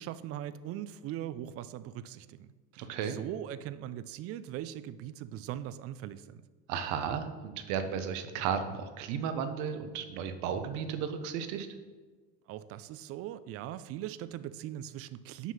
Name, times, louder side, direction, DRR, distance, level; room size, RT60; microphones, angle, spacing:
voice 1, 0.0-6.4 12.5-15.5, right 12 dB, 50° right, 14 dB, 0.5 m, -40 dB
voice 2, 2.8-3.2 6.7-11.7, right 7 dB, 70° right, 9 dB, 0.9 m, -34 dB
6.1 x 5.5 x 5.5 m, 1.4 s
supercardioid pair, 120°, 30 cm